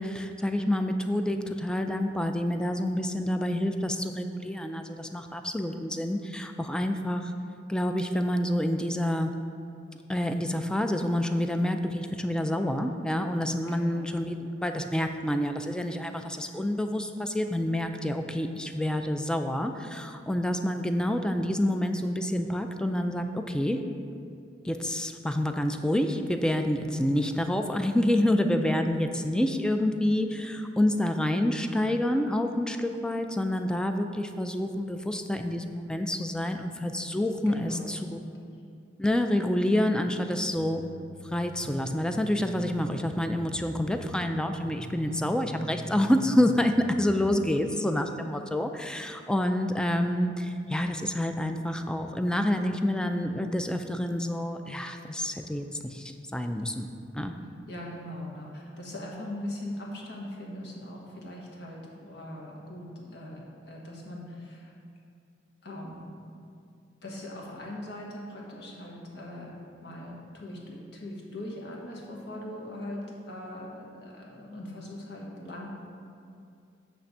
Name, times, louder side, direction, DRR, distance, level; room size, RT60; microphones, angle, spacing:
voice 1, 0.0-7.3 7.7-9.3 10.1-23.8 24.6-38.2 39.0-40.9 41.2-56.9 57.1-57.3, left 1 dB, 5° left, 6 dB, 0.3 m, -28 dB
voice 2, 13.7-14.2 26.8-27.1 37.5-38.3 45.0-45.4 57.7-64.7 65.6-66.0 67.0-69.6 69.8-75.7, left 1 dB, 65° left, -2 dB, 1.4 m, -40 dB
sound 1, 40.6-47.4, right 2 dB, 65° right, 0.5 m, -44 dB
8.6 x 3.4 x 6.5 m, 2.4 s
head